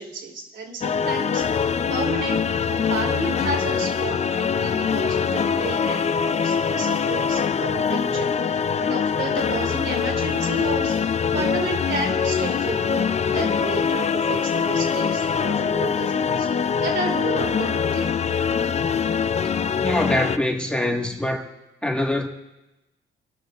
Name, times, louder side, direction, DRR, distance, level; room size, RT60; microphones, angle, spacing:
voice 1, 0.0-2.4 2.7-18.1, right 3 dB, 70° right, 1 dB, 2.9 m, -32 dB
sound 1, 0.8-20.4, left 6 dB, 35° left, 0.5 m, -23 dB
voice 2, 19.8-21.5 21.8-22.3, left 1 dB, 5° left, 1 dB, 1.6 m, -24 dB
28.0 x 12.0 x 2.4 m, 1.0 s
cardioid pair, 90°, 20 cm